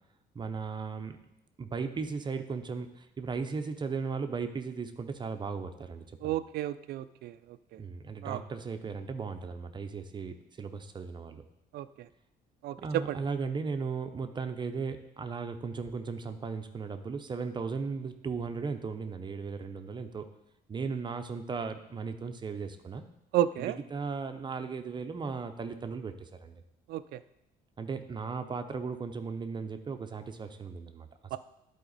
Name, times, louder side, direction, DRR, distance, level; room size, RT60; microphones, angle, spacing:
voice 1, 0.3-1.2 1.6-6.4 7.8-11.4 12.8-20.3 20.7-23.0 23.6-26.6 27.8-31.4, right 5 dB, 25° right, 7 dB, 0.6 m, -36 dB
voice 2, 6.2-7.3 8.2-8.4 11.7-11.9 12.6-12.7 23.3-23.8 26.9-27.0 31.3-31.4, right 12 dB, 70° right, 14 dB, 0.4 m, -31 dB
11.0 x 4.3 x 4.0 m, 0.84 s
cardioid pair, 110°, 17 cm